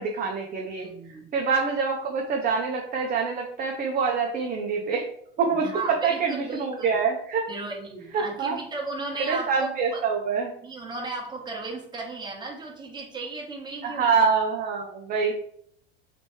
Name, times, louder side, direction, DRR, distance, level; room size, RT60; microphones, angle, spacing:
voice 1, 0.0-5.0 5.4-7.5 8.1-8.6 9.2-10.5 13.8-15.3, right 5 dB, 30° right, 1 dB, 0.6 m, -26 dB
voice 2, 0.8-1.3 5.6-6.9 7.5-10.0 10.6-14.1, right 3 dB, 15° right, -2 dB, 1.2 m, -35 dB
3.3 x 2.9 x 3.1 m, 0.66 s
hypercardioid pair, 90°, 29 cm